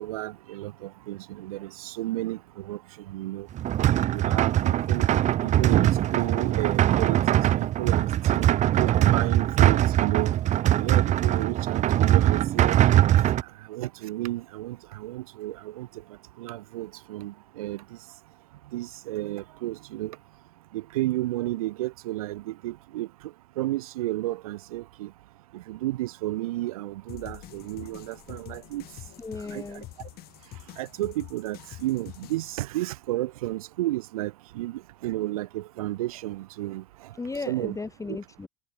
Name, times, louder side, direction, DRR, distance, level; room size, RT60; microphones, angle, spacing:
voice 1, 0.0-2.8 3.1-3.5 4.1-5.0 5.4-7.4 7.8-10.3 10.8-13.0 13.7-15.9 16.4-17.8 18.7-20.2 20.7-23.1 23.6-25.1 25.5-28.8 29.5-29.6 30.8-36.8 37.5-37.8 38.1-38.2, right 16 dB, 75° right, 2.1 m, -32 dB
sound 1, 3.5-13.4, right 13 dB, 40° right, 0.5 m, -22 dB
sound 2, 27.1-32.6, left 16 dB, 55° left, 3.7 m, -45 dB
voice 2, 29.2-29.9 37.2-38.5, left 3 dB, 15° left, 2.4 m, -35 dB
hypercardioid pair, 70°, 18 cm